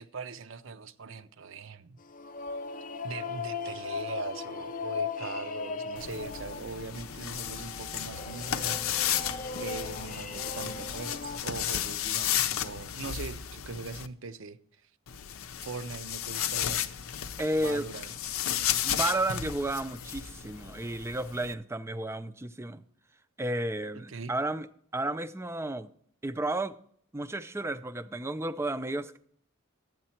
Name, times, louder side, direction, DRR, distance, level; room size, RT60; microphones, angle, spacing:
voice 1, 0.0-2.0 3.0-9.3 9.6-14.6 15.6-16.8 17.6-18.2 23.9-24.3, right 4 dB, 65° right, 0.6 m, -41 dB
sound 1, 2.0-11.4, left 4 dB, 40° left, 0.5 m, -38 dB
sound 2, 6.0-14.1 15.1-21.5, left 10 dB, 85° left, 0.6 m, -33 dB
voice 2, 17.4-17.9 18.8-22.8 23.4-24.7 24.9-25.9 26.2-26.8 27.1-29.2, right 1 dB, 10° right, 0.4 m, -32 dB
12.0 x 8.8 x 4.3 m
head